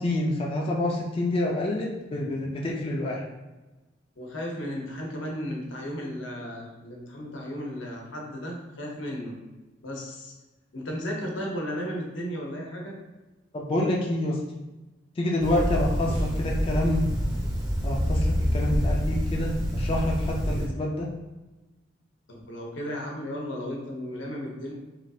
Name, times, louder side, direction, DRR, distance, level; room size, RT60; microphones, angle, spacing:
voice 1, 0.0-3.2 13.5-14.4 15.2-17.1 17.8-21.1, left 1 dB, 30° left, -2 dB, 0.3 m, -27 dB
voice 2, 4.2-9.4 9.8-10.3 10.7-12.9 16.0-16.1 22.3-24.7, equal, 85° left, -1 dB, 0.7 m, -34 dB
sound 1, 15.4-20.7, equal, 20° right, 0.5 m, -27 dB
3.0 x 2.3 x 2.6 m, 1.1 s
head